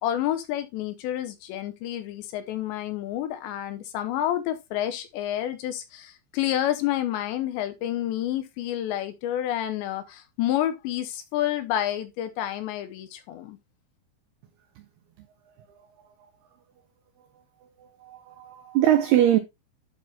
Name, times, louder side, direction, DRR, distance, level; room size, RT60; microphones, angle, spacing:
voice 1, 0.0-13.6, left 12 dB, 80° left, 2.8 m, -29 dB
voice 2, 18.0-19.4, right 12 dB, 85° right, 2.2 m, -21 dB
12.0 x 4.3 x 2.9 m
omnidirectional pair, 5.5 m